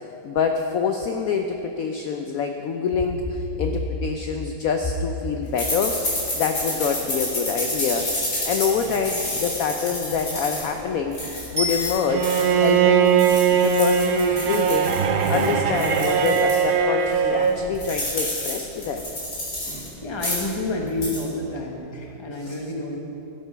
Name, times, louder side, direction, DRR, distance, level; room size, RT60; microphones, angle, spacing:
voice 1, 0.2-6.0 6.3-11.2 11.5-12.3 12.6-14.9 15.3-19.1 22.4-22.6, left 6 dB, 75° left, 5 dB, 0.8 m, -26 dB
sound 1, 5.6-12.7 13.1-16.7 17.1-17.2 17.4-19.9 20.1-20.6 20.9-21.2, left 1 dB, 55° left, 3.6 m, -30 dB
Bicycle bell, 11.6-12.7 21.8-21.9, left 2 dB, 85° right, 2.9 m, -30 dB
Bowed string instrument, 12.1-17.6, right 7 dB, 65° right, 1.0 m, -20 dB
voice 2, 20.0-23.0, left 2 dB, 20° left, 0 dB, 1.0 m, -29 dB
12.0 x 8.1 x 5.6 m, 3.0 s
omnidirectional pair, 2.1 m